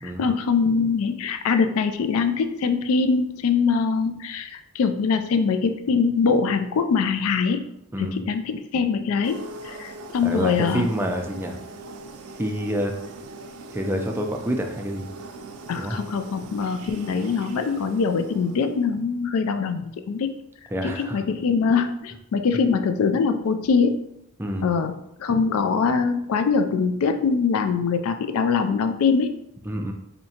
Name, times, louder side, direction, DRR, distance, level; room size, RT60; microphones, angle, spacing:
voice 1, 0.0-7.7 8.0-10.8 15.7-20.3 20.8-24.0 24.6-29.3, left 5 dB, 65° left, 8 dB, 0.3 m, -23 dB
sound 1, 9.2-19.0, right 3 dB, 70° right, 0.4 m, -41 dB
voice 2, 10.2-11.6 12.4-12.9 13.7-15.1 15.8-16.0 20.7-21.2 24.4-24.7 29.6-29.9, equal, 10° right, 2 dB, 0.4 m, -27 dB
4.3 x 2.8 x 2.8 m, 0.78 s
head